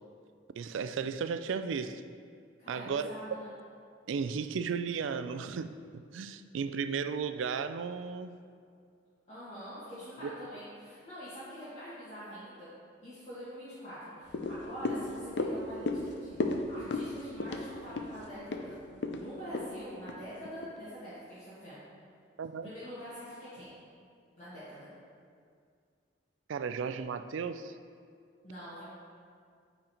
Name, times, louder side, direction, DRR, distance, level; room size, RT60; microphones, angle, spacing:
voice 1, 0.6-2.0 2.7-3.1 4.1-8.4 10.2-10.3 22.4-22.7 26.5-27.8, right 6 dB, 90° right, 10 dB, 0.4 m, -35 dB
voice 2, 2.6-3.5 9.3-12.7 13.0-18.8 19.1-21.8 22.6-23.7 24.4-24.9 28.4-28.8, equal, 35° left, -13 dB, 1.8 m, -45 dB
sound 1, 14.3-20.8 21.2-21.3, left 2 dB, 65° left, 0.5 m, -35 dB
8.8 x 4.1 x 4.4 m, 2.2 s
head